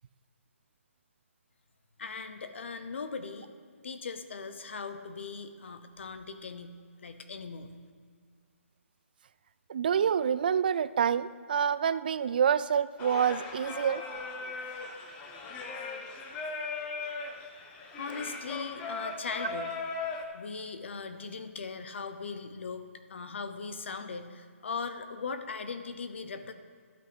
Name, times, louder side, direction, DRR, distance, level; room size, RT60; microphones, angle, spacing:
voice 1, 2.0-3.5 3.8-7.7 17.9-19.7 20.3-26.5, left 5 dB, 55° left, 9 dB, 0.8 m, -39 dB
voice 2, 9.7-14.0, right 8 dB, 40° right, 15 dB, 0.3 m, -27 dB
Singing, 13.0-20.2, left 4 dB, 15° left, 0.6 m, -38 dB
12.0 x 6.0 x 5.2 m, 2.1 s
hypercardioid pair, 165°, 8 cm